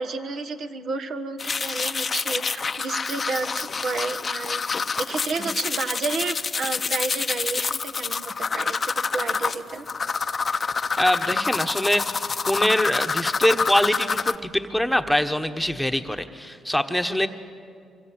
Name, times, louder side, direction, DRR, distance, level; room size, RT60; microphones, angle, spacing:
voice 1, 0.0-9.8, right 4 dB, 60° right, 8 dB, 1.4 m, -31 dB
sound 1, 1.4-14.4, left 5 dB, 35° left, 0.7 m, -27 dB
voice 2, 11.0-12.0 12.5-17.3, left 1 dB, 5° left, 7 dB, 1.2 m, -23 dB
24.5 x 24.5 x 7.8 m, 2.3 s
cardioid pair, 90°, 0 cm